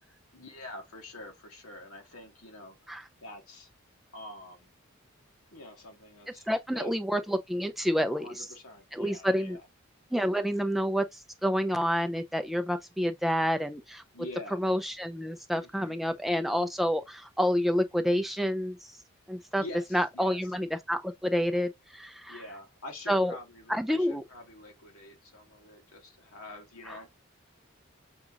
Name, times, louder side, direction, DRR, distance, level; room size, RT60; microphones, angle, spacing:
voice 1, 0.3-2.9 3.2-3.7 4.1-4.7 5.5-6.9 8.1-9.6 14.1-14.6 15.6-16.0 19.6-20.4 22.3-27.1, left 2 dB, 85° left, 1.4 m, -46 dB
voice 2, 6.5-8.5 8.9-9.6 10.1-14.0 14.6-19.0 19.3-19.6 19.9-22.4 23.1-23.4 23.7-24.2 26.9-27.0, equal, ahead, 0.4 m, -29 dB
6.1 x 2.4 x 2.7 m
head